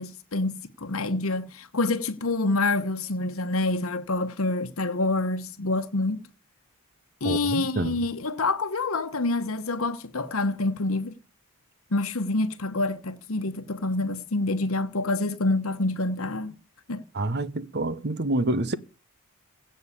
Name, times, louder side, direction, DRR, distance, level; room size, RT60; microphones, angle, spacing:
voice 1, 0.0-6.2 7.2-11.1 11.9-16.5 16.9-17.0, left 2 dB, 70° left, 1.1 m, -27 dB
voice 2, 7.2-8.0 17.1-18.7, right 2 dB, 50° right, 0.9 m, -27 dB
16.5 x 5.6 x 8.5 m
head